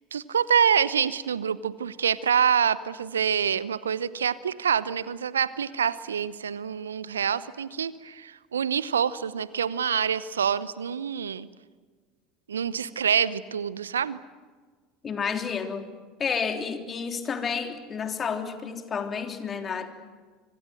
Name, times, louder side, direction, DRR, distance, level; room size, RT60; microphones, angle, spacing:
voice 1, 0.1-11.5 12.5-14.2, right 7 dB, 80° right, 18 dB, 0.8 m, -26 dB
voice 2, 15.0-15.9 16.2-19.9, left 6 dB, 30° left, 6 dB, 3.4 m, -30 dB
25.5 x 25.0 x 7.8 m, 1.5 s
figure-of-eight pair, 70°, 0 cm